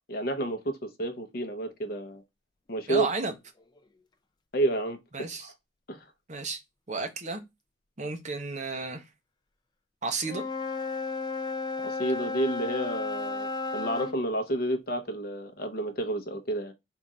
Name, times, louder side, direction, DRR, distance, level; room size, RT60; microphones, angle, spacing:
voice 1, 0.1-2.2 2.7-3.1 4.5-5.0 5.4-5.5 5.9-6.0 11.8-16.7, right 1 dB, 50° left, 0.8 m, -30 dB
voice 2, 2.9-3.3 5.1-5.5 6.3-6.6 6.9-7.4 8.0-9.0 10.0-10.4, right 3 dB, 40° right, 0.7 m, -32 dB
Wind instrument woodwind instrument, 10.2-14.2, left 3 dB, 20° left, 0.4 m, -33 dB
3.7 x 2.5 x 4.2 m
head